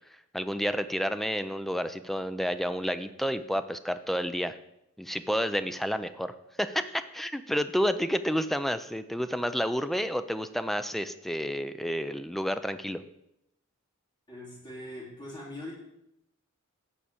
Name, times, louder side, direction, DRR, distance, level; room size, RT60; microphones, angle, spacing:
voice 1, 0.1-4.6 5.0-13.0, equal, ahead, 11 dB, 0.4 m, -30 dB
voice 2, 14.3-15.7, left 1 dB, 20° left, -6 dB, 3.1 m, -41 dB
8.7 x 4.7 x 6.8 m, 0.85 s
head